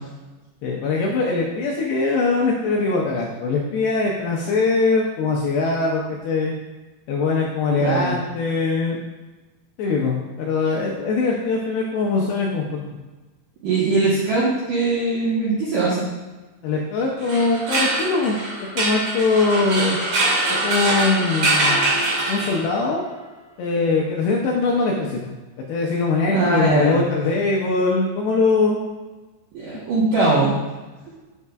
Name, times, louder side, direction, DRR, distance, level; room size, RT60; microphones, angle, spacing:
voice 1, 0.6-6.5 7.1-9.0 9.8-12.8 16.6-18.4 18.7-20.0 20.6-22.0 22.3-23.0 23.6-25.2 25.7-28.8, left 3 dB, 80° left, -2 dB, 2.4 m, -22 dB
voice 2, 7.8-8.1 13.6-16.1 26.3-27.0 29.5-30.5, right 3 dB, 80° right, -6 dB, 1.9 m, -20 dB
sound 1, 17.2-22.9, right 2 dB, 45° right, 2.8 m, -23 dB
8.2 x 7.7 x 2.3 m, 1.2 s
omnidirectional pair, 5.5 m